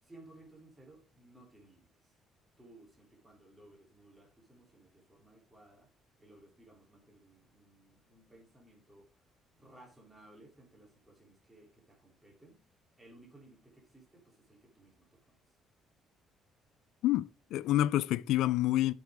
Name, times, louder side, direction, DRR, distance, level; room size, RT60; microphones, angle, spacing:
voice 1, 0.0-2.1 2.6-9.3 9.5-15.6, right 1 dB, 10° right, 3.1 m, -59 dB
voice 2, 17.0-18.9, left 14 dB, 80° left, 0.4 m, -28 dB
11.5 x 6.2 x 3.5 m
cardioid pair, 135°, 0 cm